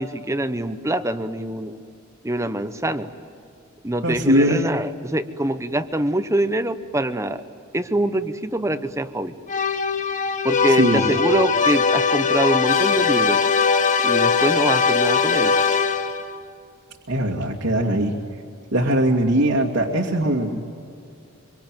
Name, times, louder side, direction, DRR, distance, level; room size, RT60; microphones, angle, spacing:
voice 1, 0.0-1.8 2.2-3.1 3.8-7.4 7.7-9.3 10.4-13.4 14.0-15.5, right 1 dB, 15° right, 11 dB, 1.0 m, -24 dB
voice 2, 4.0-4.5 10.7-11.0 17.1-18.2 18.7-20.6, right 1 dB, 75° right, -2 dB, 2.5 m, -20 dB
sound 1, 9.5-16.3, left 5 dB, 35° left, 1.2 m, -20 dB
26.0 x 25.0 x 9.1 m, 2.5 s
head